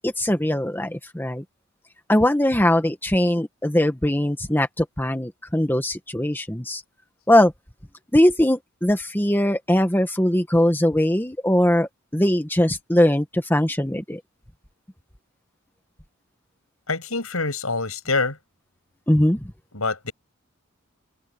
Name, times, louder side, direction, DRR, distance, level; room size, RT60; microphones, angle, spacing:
voice 1, 0.0-1.4 2.1-6.8 7.3-7.5 8.1-14.2 19.1-19.4, left 1 dB, 10° left, 1.6 m, -21 dB
voice 2, 16.9-18.4 19.7-20.1, left 3 dB, 80° left, 7.7 m, -25 dB
head